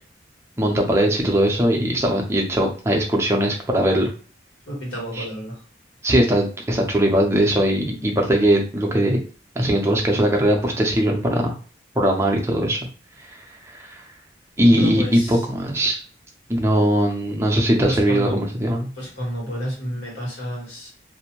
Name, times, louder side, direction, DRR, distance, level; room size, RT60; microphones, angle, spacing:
voice 1, 0.6-4.1 5.2-5.3 6.0-9.2 9.6-11.5 12.0-12.8 13.2-14.0 14.6-16.0 16.5-18.9, right 1 dB, 15° right, 0 dB, 0.5 m, -20 dB
voice 2, 4.7-5.6 14.7-15.5 17.8-18.4 18.9-20.9, equal, 85° left, -3 dB, 1.4 m, -30 dB
2.5 x 2.1 x 2.9 m, 0.39 s
head